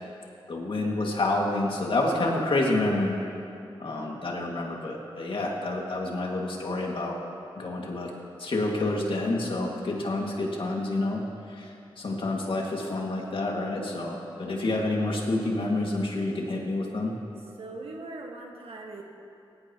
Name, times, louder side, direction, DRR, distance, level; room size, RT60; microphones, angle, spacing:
voice 1, 0.5-3.2 3.8-7.2 7.6-8.1 8.4-11.2 11.5-17.1, left 2 dB, 65° left, -1 dB, 2.3 m, -28 dB
voice 2, 17.6-19.0, right 2 dB, 85° right, 0 dB, 1.7 m, -40 dB
17.5 x 16.0 x 3.1 m, 2.6 s
cardioid pair, 55°, 10 cm